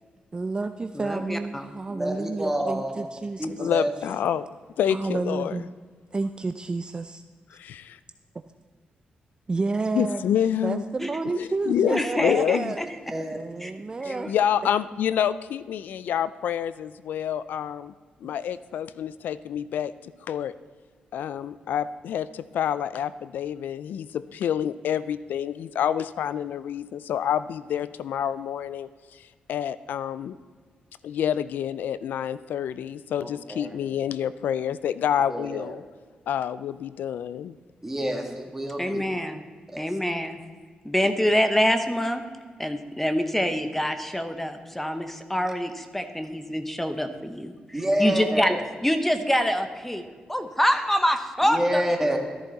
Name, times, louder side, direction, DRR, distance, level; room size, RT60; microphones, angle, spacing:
voice 1, 0.3-3.6 4.9-5.6 6.1-7.2 9.5-10.2 10.6-12.8 13.4-14.3, right 3 dB, 30° right, 8 dB, 0.5 m, -30 dB
voice 2, 0.9-1.7 11.0-11.2 11.9-12.9 13.6-13.7 14.1-14.3 38.8-39.4 39.8-40.4 40.8-42.2 42.6-48.6 48.8-51.8, equal, 10° left, 8 dB, 1.0 m, -26 dB
voice 3, 1.9-3.1 3.4-3.9 13.1-13.4 33.2-33.8 35.3-35.7 37.8-39.0 39.7-39.8 47.7-48.6 51.4-52.2, right 1 dB, 10° right, 2 dB, 2.1 m, -28 dB
voice 4, 3.6-4.5 4.8-5.6 7.5-8.0 9.9-10.8 11.3-12.7 14.3-17.9 18.2-19.9 20.3-20.5 21.1-28.9 29.5-30.4 31.0-35.8 36.3-37.6, left 9 dB, 85° left, 16 dB, 0.3 m, -28 dB
13.0 x 10.5 x 4.1 m, 1.5 s
cardioid pair, 80°, 3 cm